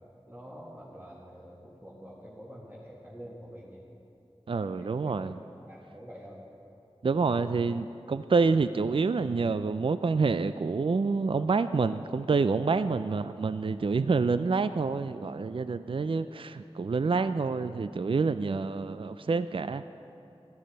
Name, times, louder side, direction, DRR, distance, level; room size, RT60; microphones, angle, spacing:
voice 1, 0.3-3.8 4.6-5.2 5.6-6.4, equal, 15° right, -7 dB, 2.1 m, -47 dB
voice 2, 4.5-5.3 7.0-19.8, right 4 dB, 55° right, 12 dB, 0.3 m, -27 dB
13.5 x 12.0 x 5.2 m, 2.7 s
wide cardioid pair, 45°, 11 cm